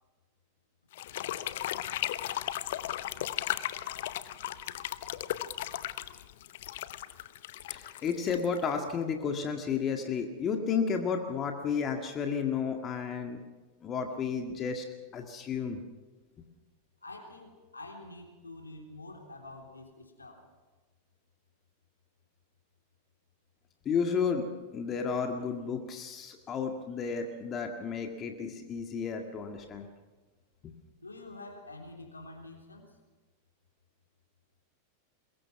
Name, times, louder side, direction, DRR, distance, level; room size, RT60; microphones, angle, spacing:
sound 1, 0.9-8.9, left 13 dB, 55° left, 0.8 m, -36 dB
voice 1, 7.7-13.4 13.8-14.9 15.1-15.8 23.9-29.9 30.6-30.7, left 6 dB, 25° left, 4 dB, 1.8 m, -32 dB
voice 2, 17.0-20.4 31.0-33.0, left 2 dB, 80° left, 2 dB, 3.5 m, -47 dB
22.5 x 21.5 x 6.0 m, 1.3 s
figure-of-eight pair, 90°, 0 cm